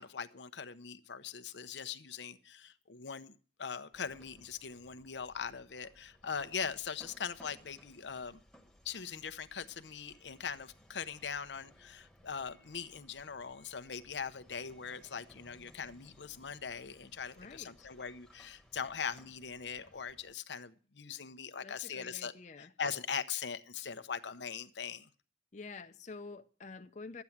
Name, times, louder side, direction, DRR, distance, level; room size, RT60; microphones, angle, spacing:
voice 1, 0.0-3.3 3.6-8.4 8.8-22.3 22.6-25.1, left 6 dB, 85° left, 0.8 m, -41 dB
sound 1, 3.9-20.3, equal, ahead, 1.3 m, -62 dB
voice 2, 17.3-17.9 21.6-22.7 25.5-27.2, left 4 dB, 40° left, 0.7 m, -48 dB
12.5 x 9.3 x 7.2 m
head